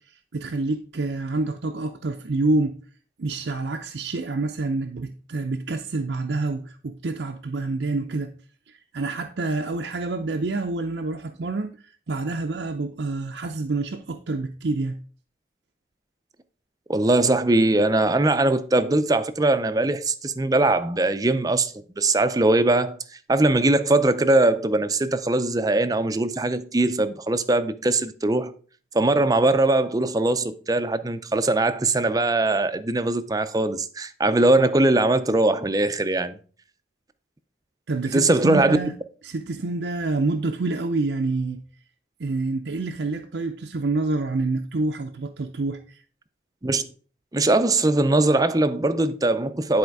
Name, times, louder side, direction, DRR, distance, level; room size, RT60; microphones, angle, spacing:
voice 1, 0.3-2.8 3.2-8.3 8.7-15.0 37.9-38.9 39.2-41.6 42.2-46.0, right 3 dB, 80° right, 0.6 m, -27 dB
voice 2, 16.9-23.0 23.3-28.5 28.9-36.3 38.1-38.8 46.6-46.9 47.3-49.8, right 2 dB, 20° right, 0.5 m, -21 dB
10.5 x 4.3 x 4.7 m
head